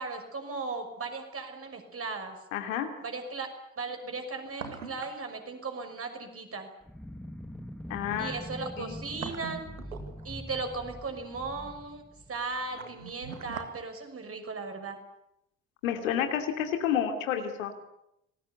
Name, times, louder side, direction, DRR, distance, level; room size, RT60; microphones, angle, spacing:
voice 1, 0.0-2.4 3.0-3.5 3.8-6.7 8.2-9.7 10.2-12.0 12.3-15.0, right 4 dB, 35° right, 5 dB, 6.1 m, -37 dB
sound 1, 1.1-1.2 4.2-5.3 5.5-5.6 8.8-10.5 12.3-13.8 14.1-14.2, right 6 dB, 80° right, 2.1 m, -42 dB
voice 2, 2.5-2.9 7.9-8.3 8.8-8.9 15.8-17.7, left 9 dB, 70° left, 6 dB, 3.0 m, -30 dB
sound 2, 6.8-12.8, equal, ahead, 2.2 m, -43 dB
26.5 x 20.0 x 8.3 m, 0.82 s
figure-of-eight pair, 50°, 41 cm